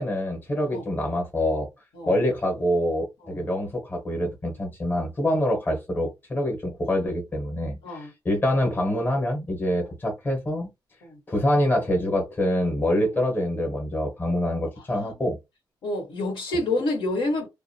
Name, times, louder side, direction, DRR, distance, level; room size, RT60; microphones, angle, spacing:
voice 1, 0.0-1.7 2.0-10.7 11.3-15.4, left 1 dB, 25° left, 1.0 m, -25 dB
voice 2, 15.8-17.5, left 2 dB, 85° left, 1.3 m, -28 dB
2.4 x 2.2 x 2.7 m
wide cardioid pair, 150°, 8 cm